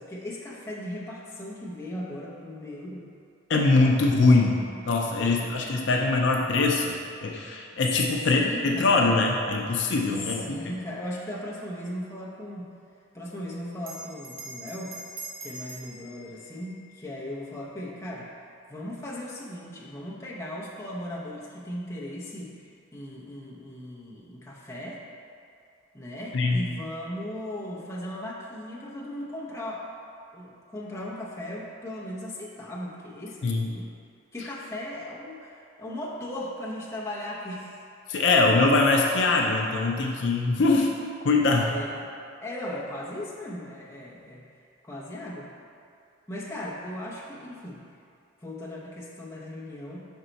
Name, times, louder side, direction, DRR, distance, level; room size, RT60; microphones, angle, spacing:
voice 1, 0.0-3.1 5.2-5.8 8.3-9.2 10.2-12.7 13.1-14.9 15.4-18.3 18.7-25.0 25.9-29.9 30.3-33.9 34.3-37.8 41.6-42.2 42.4-44.4 44.8-45.5 46.3-47.8 48.4-50.0, left 1 dB, 15° left, -5 dB, 0.7 m, -37 dB
voice 2, 3.5-10.6 26.3-26.6 33.4-33.7 38.1-40.9 41.2-41.7, left 3 dB, 60° left, 0 dB, 0.5 m, -22 dB
Bell, 13.8-18.7, right 2 dB, 45° right, 0.6 m, -44 dB
5.5 x 4.5 x 4.0 m, 2.4 s
head